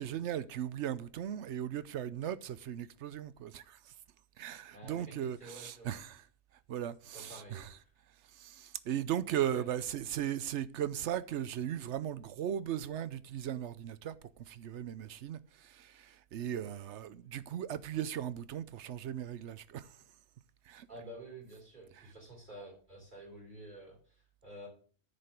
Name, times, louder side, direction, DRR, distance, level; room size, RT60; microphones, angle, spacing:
voice 1, 0.0-3.9 4.4-6.2 6.7-7.8 8.3-20.0 20.7-20.9 22.0-22.1, right 10 dB, 85° right, 1.0 m, -37 dB
voice 2, 4.7-5.9 7.1-7.9 9.4-9.6 20.9-24.0 24.4-24.7, right 1 dB, 45° right, 5.8 m, -49 dB
9.8 x 5.2 x 7.8 m
omnidirectional pair, 1.1 m